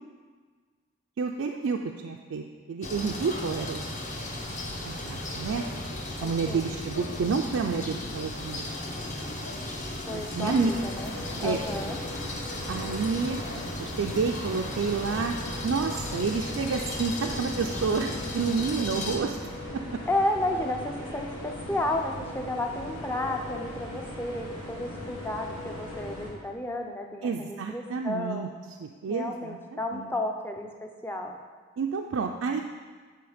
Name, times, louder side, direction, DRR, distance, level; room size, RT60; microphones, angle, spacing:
voice 1, 1.2-3.8 4.8-5.6 6.2-8.7 10.1-10.7 11.4-11.6 12.7-13.4 13.8-15.3 15.6-19.4 27.2-28.5 28.8-29.6 29.9-30.1 31.8-32.6, right 5 dB, 80° right, 2 dB, 0.4 m, -29 dB
sound 1, 2.8-19.2, left 1 dB, 35° left, 0.8 m, -36 dB
voice 2, 6.2-6.8 10.1-11.1 11.4-12.0 20.1-28.5 29.1-31.4, left 1 dB, 10° left, 3 dB, 0.5 m, -32 dB
sound 2, 10.4-26.3, left 1 dB, 75° left, 1.7 m, -39 dB
9.5 x 3.8 x 5.0 m, 1.5 s
head